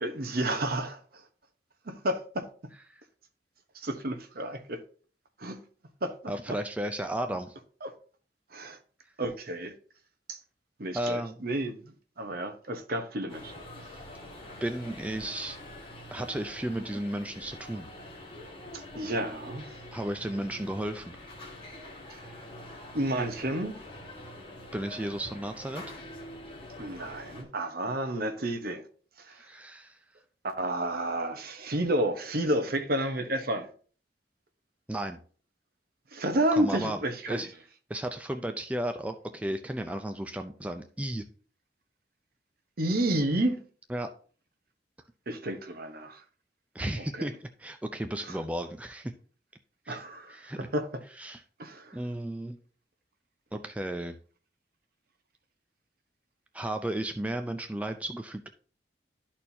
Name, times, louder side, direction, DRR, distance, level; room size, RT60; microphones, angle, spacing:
voice 1, 0.0-1.2 1.8-2.5 3.7-4.8 5.4-5.6 6.0-6.1 6.5-6.6 7.8-7.9 8.5-8.8 9.2-9.7 10.3-10.4 10.8-13.5 13.8-14.0 18.7-19.8 22.1-22.2 22.9-23.8 26.8-28.8 29.2-29.4 30.4-33.7 36.1-37.4 42.8-43.6 45.3-46.2 47.0-47.3 48.2-48.4 49.9-51.0 51.6-52.1, right 1 dB, 55° right, 0.9 m, -31 dB
voice 2, 6.3-7.6 10.9-11.3 14.6-15.6 16.1-17.9 19.9-21.2 24.7-25.8 29.3-30.0 34.9-35.2 36.6-37.0 37.3-37.5 37.9-41.2 43.9-44.1 46.7-49.1 49.9-50.0 50.3-50.6 51.2-51.4 51.9-52.6 53.5-54.2 56.5-58.5, right 1 dB, 10° right, 0.4 m, -34 dB
sound 1, 13.3-27.4, left 1 dB, 30° left, 1.7 m, -45 dB
12.5 x 4.3 x 2.7 m
head